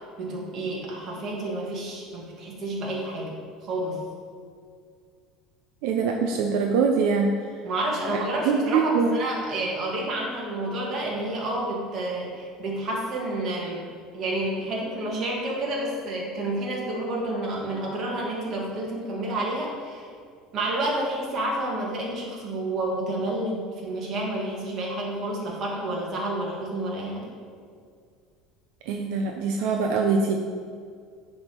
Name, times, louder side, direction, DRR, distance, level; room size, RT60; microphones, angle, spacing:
voice 1, 0.2-4.0 7.6-13.9 14.1-20.1 20.5-27.3, right 1 dB, 35° right, -3 dB, 1.6 m, -30 dB
voice 2, 5.8-7.3 8.1-9.2 28.9-30.4, right 5 dB, 70° right, 2 dB, 0.5 m, -23 dB
9.7 x 3.5 x 4.4 m, 2.2 s
cardioid pair, 160°, 0 cm